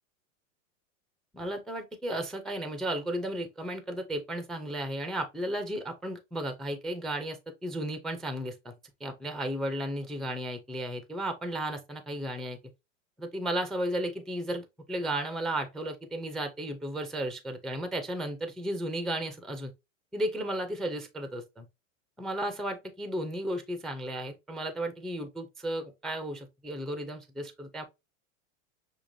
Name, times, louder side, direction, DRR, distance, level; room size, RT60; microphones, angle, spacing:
voice 1, 1.3-8.7 9.0-12.6 13.2-19.7 20.1-21.6 22.2-27.8, right 1 dB, ahead, 0.3 m, -34 dB
6.6 x 2.8 x 2.6 m
hypercardioid pair, 125°, 40 cm